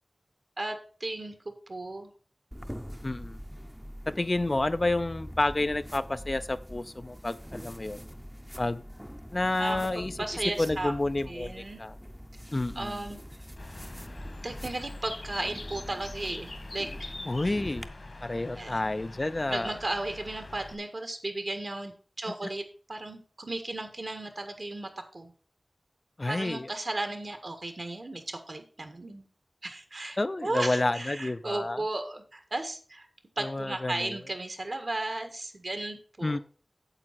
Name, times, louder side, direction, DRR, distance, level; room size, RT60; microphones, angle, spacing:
voice 1, 0.6-2.1 9.6-10.9 11.3-11.8 12.7-13.2 14.4-17.1 18.5-18.8 19.5-22.6 22.9-25.3 26.3-29.3 29.6-33.1 33.4-36.4, right 2 dB, 55° right, 7 dB, 1.7 m, -35 dB
sound 1, 2.5-17.8, equal, ahead, 0.8 m, -44 dB
voice 2, 3.0-3.4 4.1-8.0 8.6-8.8 9.3-10.2 10.6-12.0 12.5-13.0 17.3-17.9 18.2-19.8 26.2-26.7 30.2-31.8 33.4-34.2 36.2-36.4, left 2 dB, 40° left, 12 dB, 0.6 m, -30 dB
Bird, 13.6-20.7, left 2 dB, 65° left, 1.8 m, -44 dB
9.0 x 7.6 x 4.1 m, 0.40 s
wide cardioid pair, 65°, 0 cm